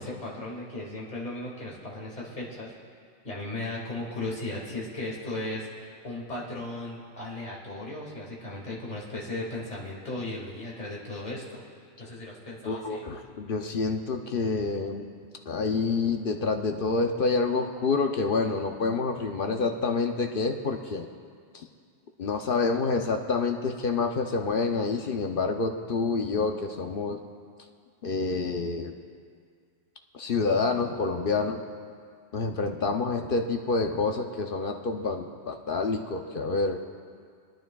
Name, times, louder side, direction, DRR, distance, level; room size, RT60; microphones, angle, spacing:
voice 1, 0.0-2.7 3.2-11.6 12.0-13.1, left 2 dB, 40° left, -4 dB, 2.2 m, -36 dB
voice 2, 12.7-15.1 15.5-21.1 21.5-21.6 22.2-27.2 28.0-28.9 30.1-31.6 32.3-36.8, left 4 dB, 55° left, 4 dB, 0.8 m, -28 dB
23.5 x 10.5 x 2.3 m, 2.1 s
omnidirectional pair, 1.2 m